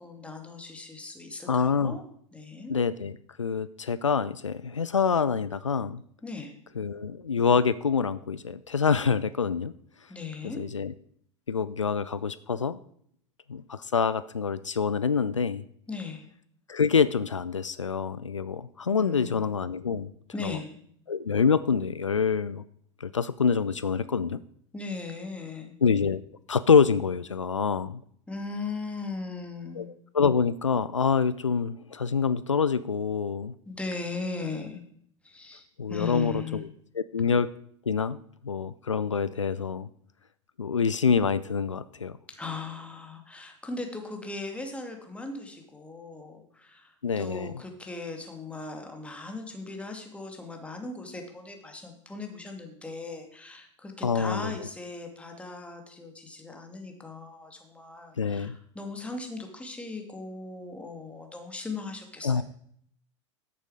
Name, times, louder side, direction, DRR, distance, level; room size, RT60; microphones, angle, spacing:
voice 1, 0.0-2.0 2.3-2.7 6.2-6.5 10.1-10.6 15.9-16.2 19.0-19.4 20.3-20.7 24.7-25.8 28.3-29.9 33.7-34.8 35.2-35.6 35.9-36.6 42.3-62.4, left 3 dB, 10° left, 3 dB, 2.3 m, -38 dB
voice 2, 1.5-2.0 2.7-6.0 6.8-9.7 10.5-10.9 11.5-12.8 13.5-15.6 16.7-20.1 20.4-20.6 21.1-22.6 23.0-24.4 25.8-26.2 26.5-28.0 29.8-29.9 30.1-33.5 35.8-36.6 37.0-37.5 37.9-38.2 38.4-39.9 40.6-42.2 47.0-47.5 54.0-54.5 58.2-58.6 62.2-62.4, left 6 dB, 85° left, 16 dB, 0.4 m, -26 dB
11.0 x 8.1 x 4.9 m, 0.65 s
figure-of-eight pair, 85°, 16 cm